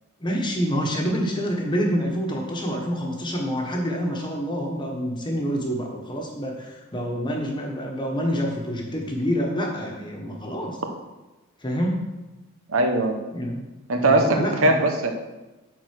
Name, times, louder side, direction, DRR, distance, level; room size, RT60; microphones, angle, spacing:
voice 1, 0.2-10.8 11.6-12.0 13.3-13.6 14.0-14.8, equal, 20° left, 0 dB, 1.3 m, -27 dB
voice 2, 12.7-13.2 13.9-15.1, right 2 dB, 80° right, 4 dB, 1.1 m, -20 dB
8.9 x 4.2 x 6.5 m, 1.1 s
head